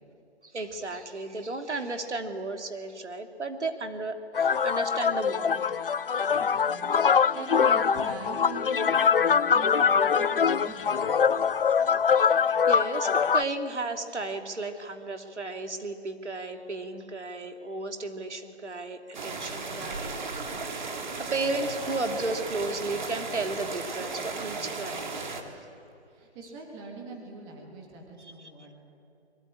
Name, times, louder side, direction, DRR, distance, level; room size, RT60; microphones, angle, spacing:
voice 1, 0.4-5.6 7.1-7.2 12.1-20.2 21.3-25.4 26.4-26.5 28.2-28.7, right 2 dB, 85° right, 6 dB, 2.8 m, -34 dB
sound 1, 4.3-13.4, left 6 dB, 55° left, 0.6 m, -23 dB
voice 2, 6.4-11.2 26.1-28.7, right 3 dB, 10° right, 1 dB, 2.0 m, -42 dB
sound 2, 19.1-25.4, right 3 dB, 40° right, 2.6 m, -35 dB
25.0 x 22.5 x 8.7 m, 2.7 s
hypercardioid pair, 165°, 34 cm